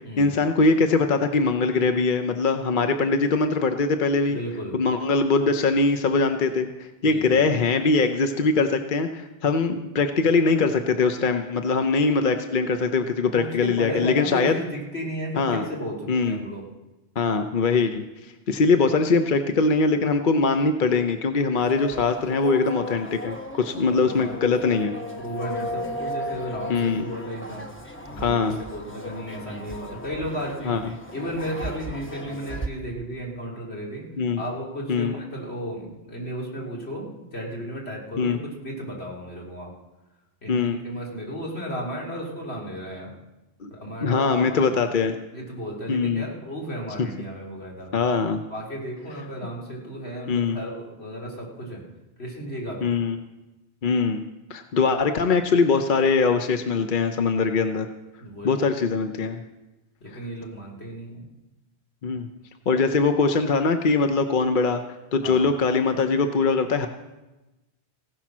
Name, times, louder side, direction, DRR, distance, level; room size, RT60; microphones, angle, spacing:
voice 1, 0.2-4.4 4.7-14.6 15.4-15.6 16.1-16.4 17.2-18.0 18.5-24.9 26.7-27.0 28.2-28.6 30.6-30.9 34.2-34.4 34.9-35.2 38.2-38.4 40.5-40.8 43.6-43.7 44.0-45.1 45.9-46.3 47.0-47.1 47.9-48.4 50.3-50.6 52.8-53.2 53.8-54.2 54.5-57.9 58.4-59.4 60.1-60.2 62.0-62.3 62.7-64.8 65.1-66.9, left 4 dB, 55° left, 7 dB, 0.9 m, -22 dB
voice 2, 4.3-4.8 7.0-7.5 13.3-16.6 23.9-27.6 28.1-30.8 31.1-34.1 34.4-39.7 40.4-43.1 43.7-44.7 45.3-47.9 48.5-51.8 52.2-52.9 58.2-58.5 60.0-61.3 65.2-65.4, equal, 80° left, -2 dB, 3.2 m, -34 dB
sound 1, 21.5-32.7, left 1 dB, 10° left, 1.1 m, -36 dB
16.0 x 10.5 x 6.1 m, 1.0 s
omnidirectional pair, 1.1 m